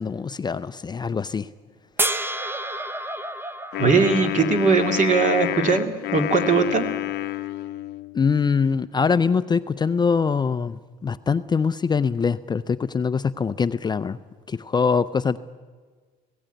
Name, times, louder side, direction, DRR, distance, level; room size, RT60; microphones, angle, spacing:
voice 1, 0.0-1.5 8.1-14.2 14.5-15.4, left 5 dB, 25° left, 12 dB, 0.5 m, -23 dB
sound 1, 2.0-5.2 7.3-7.4, right 1 dB, 15° right, 0.8 m, -30 dB
Wind instrument woodwind instrument, 3.7-8.2, left 16 dB, 80° left, 0.8 m, -28 dB
voice 2, 3.8-6.9, right 5 dB, 50° right, 5 dB, 2.3 m, -20 dB
19.0 x 16.5 x 9.1 m, 1.5 s
cardioid pair, 110°, 17 cm